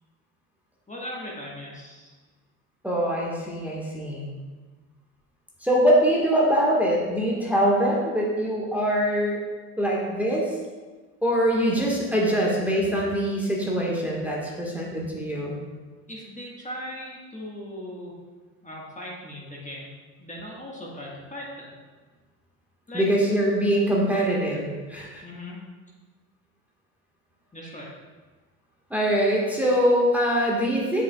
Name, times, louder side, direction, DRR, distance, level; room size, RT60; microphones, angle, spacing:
voice 1, 0.9-2.1 11.7-11.8 16.1-18.1 18.6-19.9 20.2-21.7 22.9-23.0 25.2-25.6 27.5-27.9, left 1 dB, 15° left, -4 dB, 1.5 m, -38 dB
voice 2, 2.8-4.3 5.6-9.4 9.8-10.5 11.2-15.6 22.9-25.2 28.9-31.0, equal, 5° right, -4 dB, 1.5 m, -23 dB
7.2 x 7.2 x 2.3 m, 1.4 s
hypercardioid pair, 65°, 46 cm